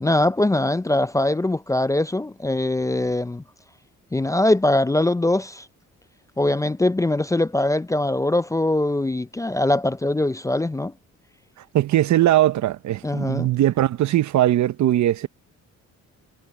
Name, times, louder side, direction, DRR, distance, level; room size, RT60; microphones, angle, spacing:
voice 1, 0.0-3.4 4.1-5.7 6.4-10.9 13.0-13.5, left 1 dB, 10° left, 0.5 m, -22 dB
voice 2, 11.7-15.3, right 13 dB, 70° right, 0.9 m, -20 dB
cardioid pair, 90°, 30 cm